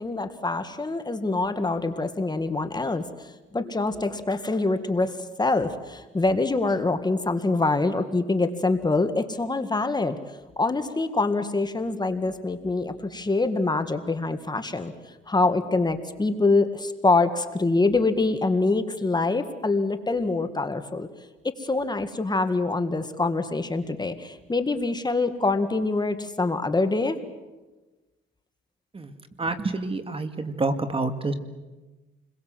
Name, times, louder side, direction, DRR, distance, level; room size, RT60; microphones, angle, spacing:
voice 1, 0.0-10.2 10.6-14.9 15.3-21.1 21.6-27.2, left 3 dB, 20° left, 8 dB, 1.9 m, -25 dB
voice 2, 28.9-31.3, right 3 dB, 30° right, 9 dB, 2.1 m, -28 dB
29.0 x 22.0 x 7.8 m, 1.1 s
cardioid pair, 90°, 20 cm